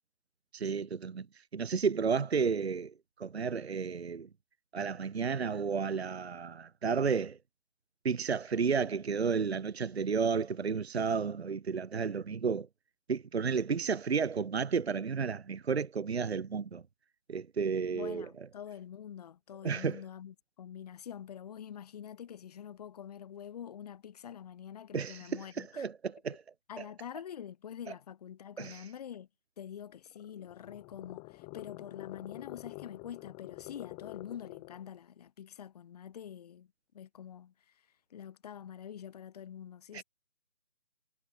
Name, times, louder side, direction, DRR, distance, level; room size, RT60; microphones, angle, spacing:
voice 1, 0.5-1.3 1.5-4.3 4.7-7.4 8.0-12.7 13.1-16.8 17.3-18.2 19.6-20.0 24.9-25.2 25.6-26.4 26.8-26.9 28.6-28.8 39.9-40.0, right 5 dB, 55° right, 1.2 m, -32 dB
voice 2, 17.9-25.9 26.7-29.3 29.6-36.7 36.9-40.0, left 9 dB, 30° left, 4.4 m, -46 dB
sound 1, 29.9-34.9, left 35 dB, 15° left, 3.7 m, -47 dB
figure-of-eight pair, 155°, 38 cm